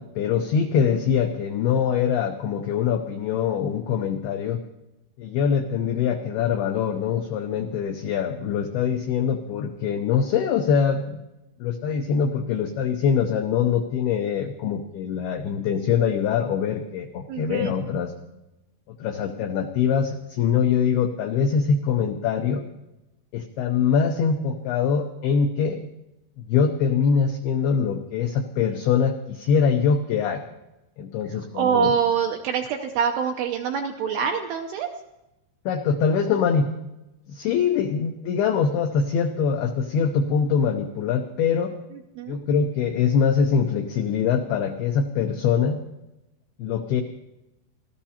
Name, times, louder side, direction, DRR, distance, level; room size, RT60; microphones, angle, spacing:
voice 1, 0.0-4.6 5.2-11.2 11.6-18.1 18.9-22.6 23.3-25.8 26.4-30.5 31.0-31.9 35.7-36.7 37.3-41.7 42.3-45.8 46.6-47.0, left 7 dB, 85° left, 5 dB, 2.2 m, -23 dB
voice 2, 17.3-17.7 31.5-34.9 42.2-42.4, right 7 dB, 80° right, 3 dB, 2.4 m, -25 dB
28.0 x 13.5 x 2.9 m, 0.95 s
omnidirectional pair, 5.6 m